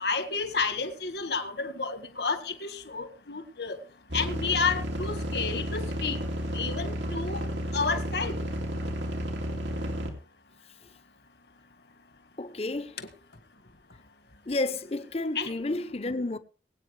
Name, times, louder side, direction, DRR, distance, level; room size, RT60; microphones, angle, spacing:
voice 1, 0.0-3.8 4.1-6.2 6.5-7.5 7.7-8.4 13.0-13.1 15.4-15.5, left 5 dB, 70° left, 1.8 m, -31 dB
sound 1, 4.1-10.1, equal, 90° right, 2.8 m, -32 dB
voice 2, 12.4-13.0 14.5-16.4, left 2 dB, 35° left, 0.8 m, -31 dB
23.0 x 8.9 x 3.4 m
head